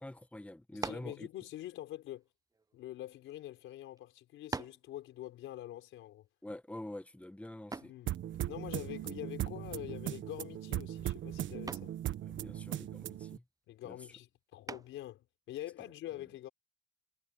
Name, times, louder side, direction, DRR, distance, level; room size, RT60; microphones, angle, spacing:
voice 1, 0.0-1.3 6.4-7.8 12.2-13.4 13.9-14.0, left 1 dB, 5° left, 1.6 m, -46 dB
voice 2, 0.7-2.2 2.7-6.3 7.8-8.2 8.5-11.9 13.7-16.5, left 13 dB, 90° left, 4.6 m, -45 dB
sound 1, 0.8-1.2 2.1-3.3 4.0-4.1 4.5-4.9 7.7-8.0 9.9-10.3 10.7-11.1 11.7-12.0 14.7-15.1, right 3 dB, 20° right, 0.6 m, -43 dB
sound 2, 8.1-13.4, right 12 dB, 70° right, 1.4 m, -38 dB
cardioid pair, 90°, 20 cm